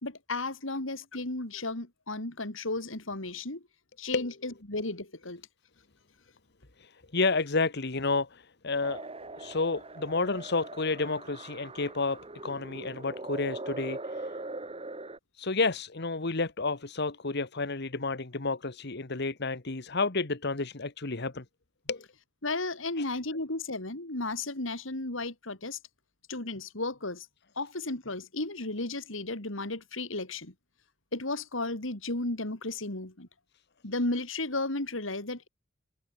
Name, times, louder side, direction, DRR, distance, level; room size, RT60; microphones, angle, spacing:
voice 1, 0.0-3.6 4.0-5.4 22.4-25.8 26.3-27.3 27.6-30.5 31.1-33.3 33.8-35.5, left 2 dB, 80° left, 3.7 m, -34 dB
voice 2, 6.8-9.1 9.4-14.3 15.4-21.4 21.9-22.0 23.0-23.1, left 3 dB, 60° left, 1.6 m, -31 dB
sound 1, 8.8-15.2, right 2 dB, 30° right, 3.5 m, -41 dB
head